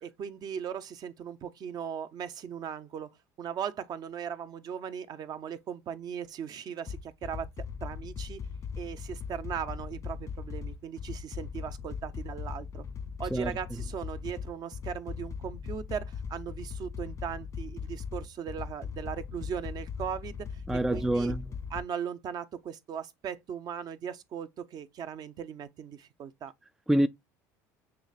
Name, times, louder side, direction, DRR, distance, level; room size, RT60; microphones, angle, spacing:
voice 1, 0.0-3.1 3.4-7.5 7.8-8.4 8.8-12.8 13.2-20.6 20.9-21.3 21.7-26.5, right 8 dB, 50° right, 0.7 m, -38 dB
sound 1, 6.9-21.8, left 6 dB, 35° left, 0.6 m, -39 dB
voice 2, 20.7-21.5 26.9-27.1, right 1 dB, 5° right, 0.3 m, -26 dB
6.9 x 3.2 x 2.3 m
hypercardioid pair, 80°, 9 cm